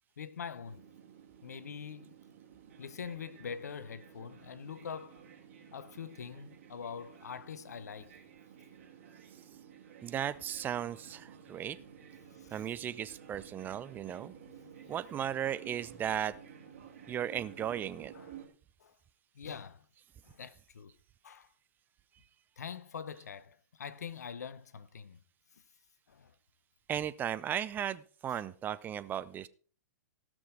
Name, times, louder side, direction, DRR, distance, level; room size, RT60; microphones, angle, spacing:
voice 1, 0.2-0.8 1.4-2.2 2.8-5.2 5.7-8.1 12.3-12.6 18.1-18.3 18.8-19.0 19.3-19.8 20.2-20.9 21.2-21.5 22.6-25.2 25.5-25.6 26.1-26.3, left 7 dB, 70° left, 0.9 m, -44 dB
sound 1, 0.5-18.5, right 8 dB, 50° right, 3.5 m, -54 dB
voice 2, 10.0-11.8 12.5-14.3 14.9-16.3 17.1-18.1 26.9-29.5, right 10 dB, 20° right, 0.5 m, -36 dB
17.0 x 6.2 x 4.8 m
figure-of-eight pair, 110°, 9 cm